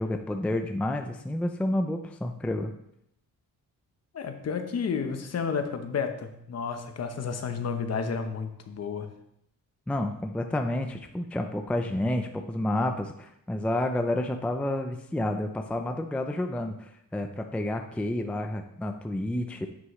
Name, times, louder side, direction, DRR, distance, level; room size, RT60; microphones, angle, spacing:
voice 1, 0.0-2.7 9.9-19.7, left 1 dB, 5° left, 6 dB, 0.4 m, -30 dB
voice 2, 4.1-9.1, left 6 dB, 50° left, 6 dB, 0.9 m, -31 dB
9.4 x 6.1 x 3.1 m, 0.77 s
wide cardioid pair, 150°, 33 cm